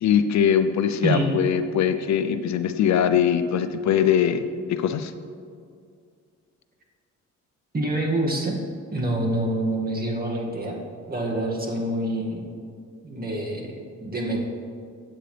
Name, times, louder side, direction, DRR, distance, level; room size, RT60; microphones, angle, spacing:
voice 1, 0.0-4.4 4.7-5.1, left 8 dB, 65° left, 10 dB, 0.6 m, -21 dB
voice 2, 7.7-8.6 8.9-10.8 11.1-12.5 13.0-14.4, right 1 dB, 30° right, -1 dB, 2.2 m, -26 dB
16.0 x 8.7 x 3.4 m, 2.2 s
cardioid pair, 90°, 30 cm